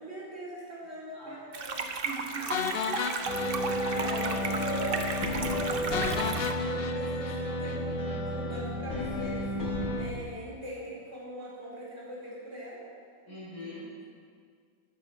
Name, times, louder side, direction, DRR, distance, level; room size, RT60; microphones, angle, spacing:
voice 1, 0.0-1.8 3.9-9.5 9.9-12.8, equal, 30° right, -6 dB, 4.7 m, -41 dB
sound 1, 1.5-6.5, right 4 dB, 50° right, 0.6 m, -35 dB
voice 2, 2.0-3.0 13.3-14.1, right 2 dB, 45° left, -8 dB, 5.3 m, -42 dB
sound 2, 2.5-4.4 4.7-4.8 5.1-5.2 5.9-8.2, left 6 dB, 70° left, 0.5 m, -35 dB
sound 3, 3.3-10.0, equal, 90° left, 3.6 m, -32 dB
15.0 x 9.9 x 6.1 m, 2.1 s
omnidirectional pair, 2.1 m